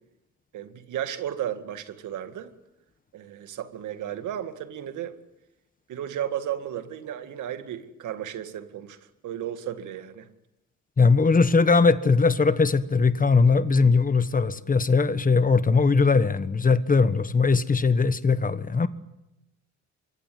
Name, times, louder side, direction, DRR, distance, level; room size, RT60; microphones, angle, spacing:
voice 1, 0.5-2.5 3.1-5.2 5.9-9.0 9.2-10.3, right 10 dB, 80° right, 9 dB, 2.2 m, -34 dB
voice 2, 11.0-18.9, left 4 dB, 25° left, 13 dB, 1.4 m, -20 dB
25.5 x 23.0 x 9.4 m, 0.92 s
cardioid pair, 90°, 30 cm